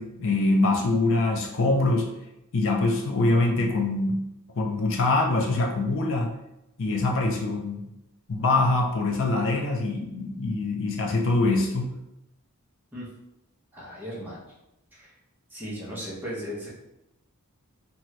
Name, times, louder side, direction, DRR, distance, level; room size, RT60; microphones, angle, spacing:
voice 1, 0.0-2.1 2.5-4.2 4.6-6.4 6.8-7.8 8.3-12.0, left 2 dB, 60° left, 1 dB, 0.5 m, -24 dB
voice 2, 13.7-14.4 14.9-15.1 15.5-16.7, equal, 10° right, -6 dB, 0.7 m, -36 dB
2.7 x 2.3 x 3.1 m, 0.88 s
head